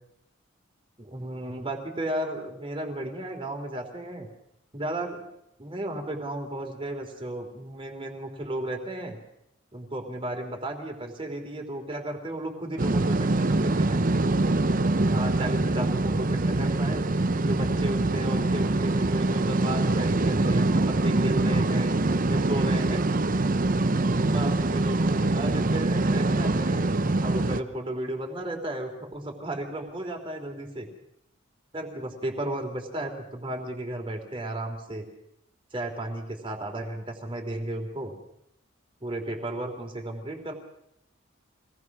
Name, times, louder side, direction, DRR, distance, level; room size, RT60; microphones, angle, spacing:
voice 1, 1.0-4.3 4.7-5.2 5.6-9.2 9.7-14.0 15.1-17.0 17.4-21.9 22.3-23.1 24.3-26.9 27.2-30.9 31.7-35.0 35.7-38.1 39.0-40.5, right 1 dB, 25° right, 3 dB, 3.3 m, -34 dB
sound 1, 12.8-27.6, right 2 dB, 40° right, 0.8 m, -24 dB
25.5 x 18.5 x 6.2 m, 0.81 s
head